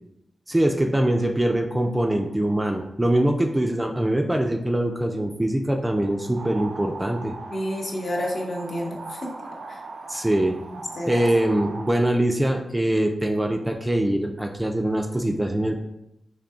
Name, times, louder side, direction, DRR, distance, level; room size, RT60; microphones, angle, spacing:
voice 1, 0.5-7.4 10.1-10.6 11.1-15.8, right 1 dB, 10° right, 3 dB, 0.3 m, -23 dB
sound 1, 6.0-11.9, right 3 dB, 85° right, 0.4 m, -39 dB
voice 2, 7.5-9.2 9.7-9.8 11.0-11.2, equal, 55° left, 0 dB, 0.8 m, -29 dB
3.8 x 2.7 x 3.5 m, 0.86 s
wide cardioid pair, 125°, 0 cm